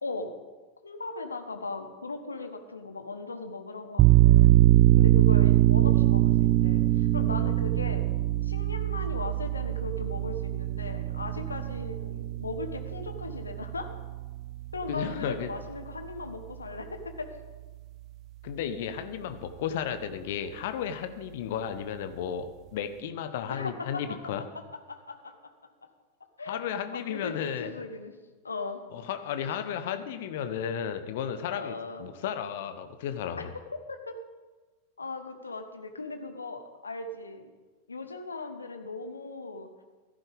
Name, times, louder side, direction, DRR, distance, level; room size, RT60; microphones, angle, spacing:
voice 1, 0.0-0.3 0.8-4.6 5.0-8.0 8.4-13.9 14.7-17.3 23.5-24.2 24.9-25.5 26.4-26.6 26.9-28.1 28.4-28.8 31.5-32.1 33.4-33.5 33.9-34.2 35.0-37.5 37.9-39.7, left 3 dB, 75° left, 7 dB, 1.3 m, -38 dB
sound 1, 4.0-15.3, right 15 dB, 35° right, 0.5 m, -23 dB
voice 2, 14.9-15.5 18.4-24.4 26.5-27.7 28.9-33.5, left 8 dB, 55° left, 10 dB, 1.0 m, -34 dB
15.0 x 14.0 x 3.5 m, 1.3 s
figure-of-eight pair, 90°, 0 cm